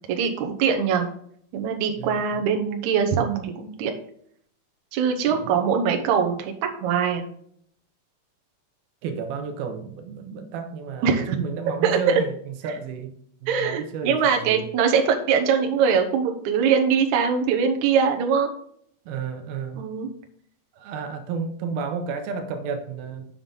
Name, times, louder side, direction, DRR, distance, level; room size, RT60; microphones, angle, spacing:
voice 1, 0.1-1.1 1.5-3.9 4.9-6.5 6.8-7.3 11.0-11.4 11.8-12.2 13.5-18.5 19.8-20.1, right 6 dB, 65° right, 3 dB, 2.1 m, -22 dB
voice 2, 2.0-2.4 5.3-5.6 9.0-13.1 13.4-14.6 19.1-19.8 20.7-23.3, right 5 dB, 85° right, 6 dB, 2.6 m, -32 dB
7.2 x 6.7 x 3.8 m, 0.64 s
omnidirectional pair, 4.4 m